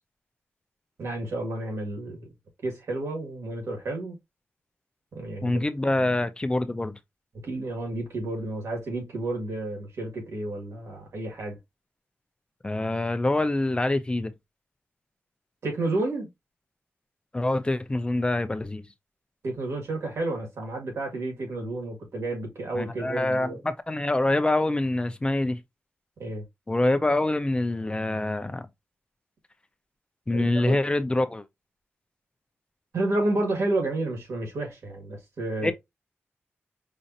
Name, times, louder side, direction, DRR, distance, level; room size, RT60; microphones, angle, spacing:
voice 1, 1.0-2.3 2.6-4.2 5.1-6.2 7.4-11.6 15.6-16.3 19.4-23.6 26.2-26.4 30.3-30.8 32.9-35.7, right 2 dB, 85° right, 2.0 m, -31 dB
voice 2, 5.4-7.0 12.6-14.3 17.3-18.8 22.8-25.6 26.7-28.7 30.3-31.4 35.6-35.7, left 2 dB, 20° left, 0.5 m, -25 dB
5.2 x 2.5 x 2.7 m
wide cardioid pair, 85°, 5 cm